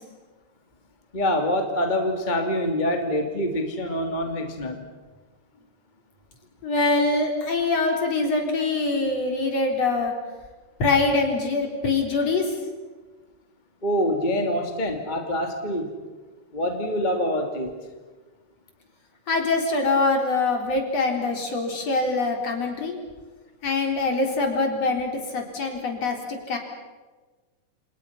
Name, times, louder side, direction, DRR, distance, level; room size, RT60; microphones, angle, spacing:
voice 1, 1.1-4.9 13.8-15.9 16.5-17.8, equal, 15° left, 4 dB, 2.4 m, -25 dB
voice 2, 6.6-10.1 10.8-12.5 19.3-23.0 23.6-26.6, left 3 dB, 50° left, 2 dB, 5.0 m, -24 dB
29.5 x 28.5 x 5.8 m, 1.3 s
omnidirectional pair, 3.7 m